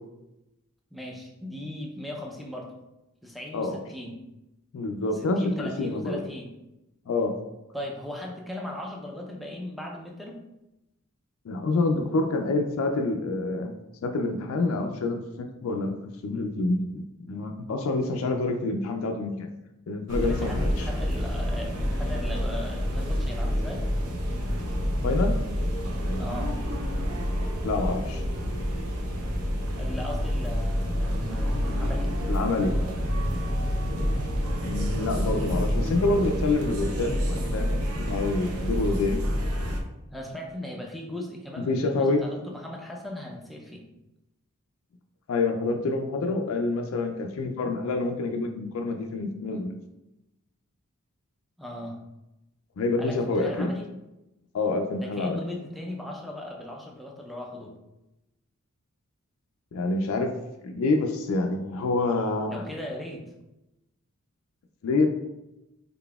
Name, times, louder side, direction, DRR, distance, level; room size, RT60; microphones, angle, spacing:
voice 1, 0.9-2.7 3.2-4.2 5.1-6.5 7.7-10.4 20.2-23.8 26.2-26.5 29.7-32.1 40.1-43.8 51.6-52.0 53.0-53.9 54.9-57.7 62.5-63.3, left 1 dB, ahead, 0 dB, 0.4 m, -38 dB
voice 2, 4.7-6.2 7.1-7.3 11.5-13.7 14.0-15.9 16.2-19.5 19.9-20.9 25.0-25.4 26.0-26.2 27.6-28.2 32.3-32.8 34.6-39.2 41.6-42.2 45.3-49.8 52.8-53.7 54.5-55.4 59.7-60.3 60.6-62.6 64.8-65.1, left 3 dB, 70° left, 4 dB, 0.3 m, -27 dB
sound 1, 20.1-39.8, equal, 80° right, 0.6 m, -28 dB
3.9 x 3.5 x 2.3 m, 0.94 s
head